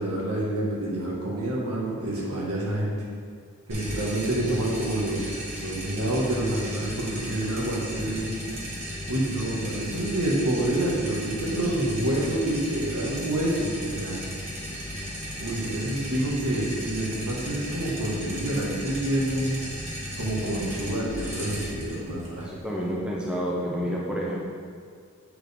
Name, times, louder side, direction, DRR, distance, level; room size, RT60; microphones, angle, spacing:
voice 1, 0.0-2.9 3.7-5.3 5.6-8.3 9.1-14.2 14.8-15.0 15.4-19.6 20.2-22.5, right 1 dB, 80° right, -4 dB, 1.5 m, -28 dB
sound 1, 3.7-23.0, equal, 30° right, 1.3 m, -36 dB
voice 2, 22.4-24.4, equal, 5° right, -5 dB, 0.6 m, -29 dB
7.6 x 4.4 x 3.5 m, 2.1 s
head